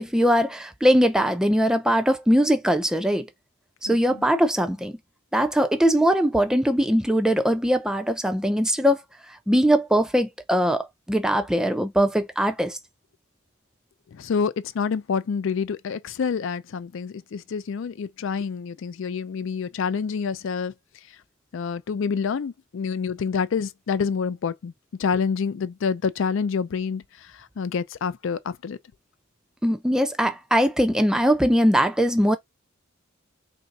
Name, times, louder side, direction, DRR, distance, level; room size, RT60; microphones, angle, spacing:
voice 1, 0.0-3.3 3.8-4.9 5.3-9.0 9.5-12.8 29.6-32.4, equal, 5° right, 0.4 m, -21 dB
voice 2, 14.1-20.7 21.5-24.7 25.0-28.8, left 6 dB, 65° left, 0.4 m, -27 dB
3.3 x 2.6 x 4.0 m
head